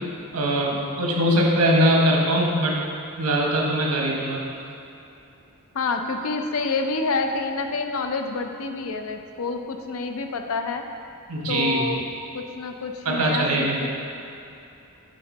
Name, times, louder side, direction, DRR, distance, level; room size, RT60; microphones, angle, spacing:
voice 1, 0.3-2.8 3.2-4.4 11.3-11.8 13.0-13.8, right 1 dB, 85° right, -1 dB, 1.2 m, -21 dB
voice 2, 5.7-10.8 11.5-12.0 12.3-13.9, left 3 dB, 70° left, 5 dB, 0.5 m, -28 dB
7.6 x 3.9 x 5.3 m, 2.8 s
head